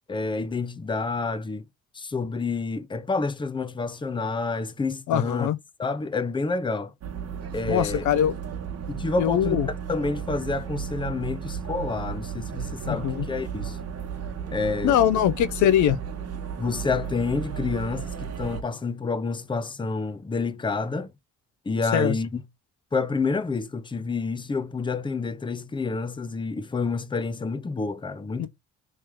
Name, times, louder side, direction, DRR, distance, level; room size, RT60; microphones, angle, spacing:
voice 1, 0.1-1.7 1.9-5.5 5.8-6.9 7.5-8.0 8.9-9.6 9.9-13.8 14.5-15.0 16.6-21.1 21.7-22.4 22.9-28.5, left 4 dB, 15° left, 0.6 m, -28 dB
voice 2, 5.1-5.6 7.7-8.3 9.2-9.7 12.9-13.2 14.8-16.0 21.9-22.1 28.4-28.5, left 10 dB, 75° left, 0.5 m, -22 dB
sound 1, 7.0-18.6, right 7 dB, 55° right, 1.0 m, -34 dB
3.3 x 2.8 x 3.5 m
cardioid pair, 90°, 30 cm